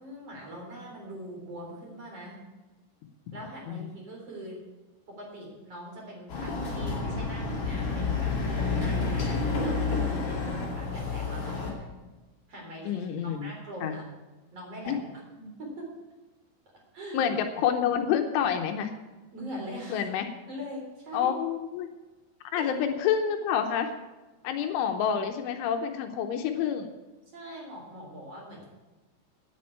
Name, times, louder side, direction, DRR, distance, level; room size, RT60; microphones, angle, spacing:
voice 1, 0.0-2.4 3.3-4.6 5.1-10.1 10.5-11.9 12.5-14.1 14.5-15.8 16.9-17.2 19.3-20.1 20.5-21.3 22.5-22.7 27.3-28.6, equal, 30° right, -1 dB, 4.2 m, -42 dB
Chatter / Car passing by / Motorcycle, 6.3-11.7, left 4 dB, 35° left, 3.2 m, -29 dB
voice 2, 12.9-13.5 13.8-13.9 14.9-15.0 17.1-18.9 19.9-20.2 21.1-21.9 22.5-23.9 24.4-26.9, left 8 dB, 75° left, 6 dB, 3.1 m, -28 dB
10.5 x 9.0 x 8.8 m, 1.2 s
omnidirectional pair, 5.9 m